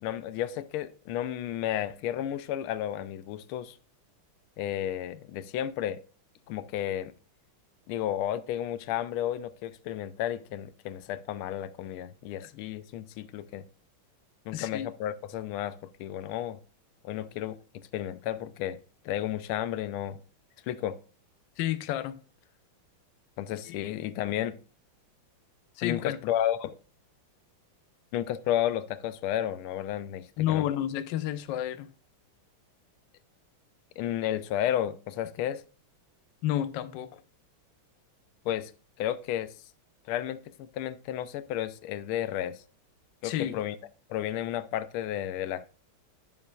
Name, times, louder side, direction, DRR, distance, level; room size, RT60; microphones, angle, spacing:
voice 1, 0.0-3.8 4.6-6.0 6.5-7.1 7.9-13.7 14.5-15.7 16.0-16.6 17.0-18.8 19.0-20.2 20.7-21.0 23.4-24.6 25.8-26.7 28.1-30.7 34.0-35.6 38.4-38.7 39.0-39.5 40.1-42.6 43.2-43.8 44.1-45.7, left 11 dB, 85° left, 1.4 m, -32 dB
voice 2, 14.5-14.9 21.6-22.1 23.7-23.8 25.8-26.2 30.4-31.9 36.4-37.2 43.2-43.5, left 12 dB, 70° left, 1.2 m, -30 dB
10.5 x 7.1 x 2.3 m
omnidirectional pair, 2.3 m